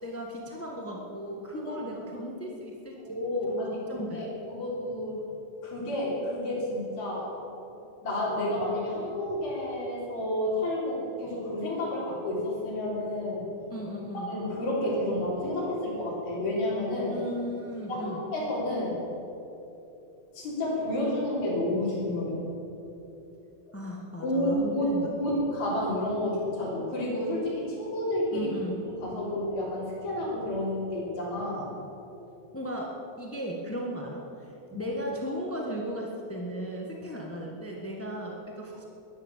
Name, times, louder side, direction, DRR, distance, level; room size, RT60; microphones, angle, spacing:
voice 1, 0.0-3.0 3.5-4.3 13.7-14.3 17.1-18.3 23.7-25.1 28.3-28.8 32.5-34.5 34.7-38.8, equal, 20° left, -1 dB, 0.3 m, -36 dB
voice 2, 3.0-5.2 5.6-7.3 8.0-13.5 14.2-17.2 17.9-19.0 20.3-22.4 24.2-28.5 28.9-31.7 34.7-34.9, left 1 dB, 75° left, -7 dB, 5.0 m, -30 dB
15.0 x 11.0 x 7.4 m, 3.0 s
omnidirectional pair, 3.3 m